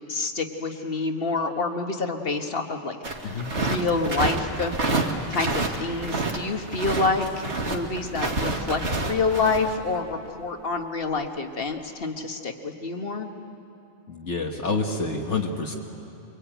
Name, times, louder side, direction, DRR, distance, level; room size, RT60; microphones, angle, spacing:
voice 1, 0.1-3.0 3.5-4.7 5.3-8.8 9.1-13.3, left 3 dB, 55° left, 5 dB, 1.7 m, -27 dB
sound 1, 3.0-6.4 6.7-9.7, right 2 dB, 70° right, 2.2 m, -27 dB
voice 2, 14.1-15.7, left 3 dB, 75° left, 1 dB, 1.9 m, -28 dB
24.0 x 23.5 x 9.1 m, 2.7 s
omnidirectional pair, 1.2 m